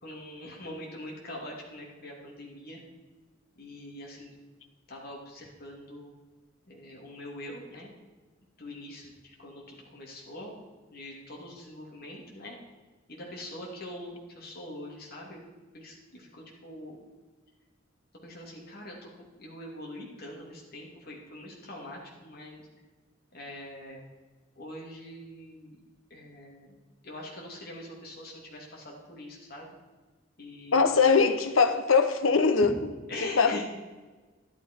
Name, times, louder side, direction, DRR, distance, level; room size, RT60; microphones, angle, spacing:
voice 1, 0.0-2.8 3.6-4.4 4.9-6.1 6.7-7.9 8.6-10.5 10.9-12.5 13.1-15.4 15.7-17.0 18.2-22.6 23.3-24.0 24.6-25.8 26.1-26.8 27.0-29.7 30.4-30.9 31.2-31.3 33.1-33.6, left 1 dB, 50° left, -2 dB, 2.7 m, -43 dB
voice 2, 30.7-32.7 33.4-33.6, left 5 dB, 90° left, 8 dB, 0.9 m, -21 dB
11.5 x 11.5 x 4.6 m, 1.3 s
head